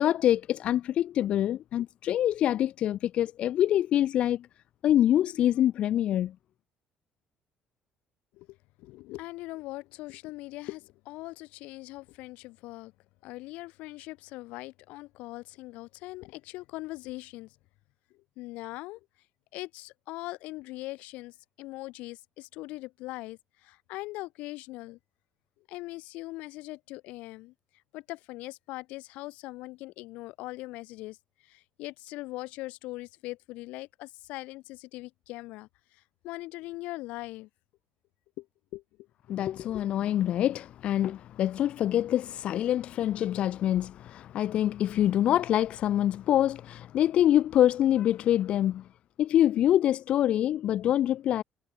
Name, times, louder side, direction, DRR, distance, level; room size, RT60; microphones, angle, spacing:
voice 1, 0.0-4.5 4.8-6.3 39.3-48.9 49.2-51.4, left 11 dB, 55° left, 0.4 m, -25 dB
voice 2, 8.3-12.9 13.2-17.5 18.1-19.0 19.5-25.0 25.7-27.5 27.9-31.2 31.4-37.5 38.4-38.5 38.7-39.4, left 20 dB, 85° left, 1.3 m, -41 dB
cardioid pair, 125°, 2 cm